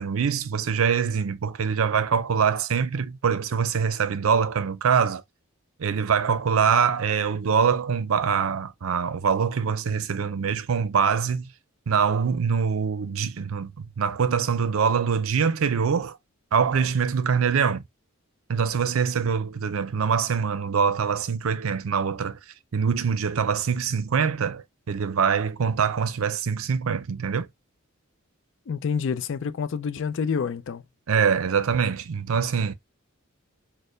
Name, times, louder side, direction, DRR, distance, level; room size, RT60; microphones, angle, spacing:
voice 1, 0.0-5.2 5.8-11.5 11.9-16.2 16.5-17.8 18.5-22.4 22.7-27.5 31.1-32.7, right 6 dB, 75° right, 0.5 m, -24 dB
voice 2, 28.7-30.8, left 6 dB, 65° left, 0.4 m, -28 dB
4.3 x 2.1 x 3.1 m
head